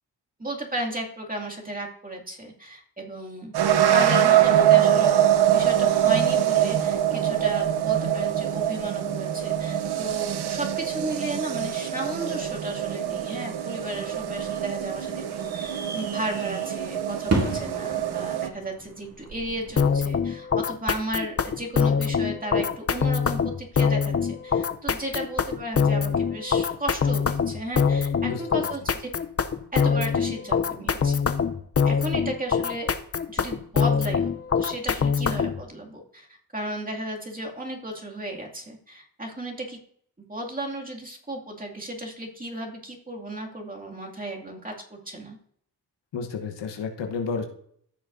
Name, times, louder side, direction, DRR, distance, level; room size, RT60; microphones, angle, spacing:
voice 1, 0.4-3.5 3.9-5.2 5.5-29.1 29.7-31.2 31.8-32.9 33.3-34.3 34.6-39.8 40.3-45.4, right 1 dB, 20° right, -1 dB, 2.4 m, -34 dB
sound 1, 3.5-18.5, right 11 dB, 65° right, 0.9 m, -24 dB
sound 2, 14.0-20.0, right 2 dB, 35° right, 2.2 m, -34 dB
sound 3, 19.8-35.6, left 6 dB, 35° left, 0.7 m, -24 dB
voice 2, 28.2-28.7 46.1-47.4, left 5 dB, 75° left, 4 dB, 1.2 m, -31 dB
14.5 x 6.4 x 2.7 m, 0.64 s
supercardioid pair, 50°, 43 cm